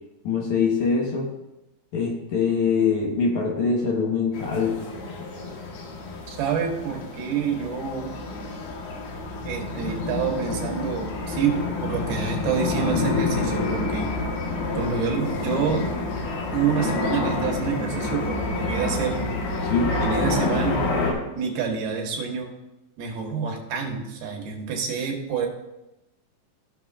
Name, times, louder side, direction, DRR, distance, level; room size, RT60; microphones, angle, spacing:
voice 1, 0.2-1.3 1.9-4.8 19.6-19.9, left 5 dB, 60° left, -1 dB, 2.3 m, -23 dB
sound 1, 4.3-21.1, left 3 dB, 80° left, 3.1 m, -28 dB
voice 2, 6.3-8.2 9.4-14.1 14.7-15.9 16.5-19.7 20.0-20.9 21.4-22.5 23.0-25.5, right 6 dB, 90° right, 2 dB, 3.2 m, -27 dB
15.5 x 5.9 x 2.5 m, 0.96 s
omnidirectional pair, 4.3 m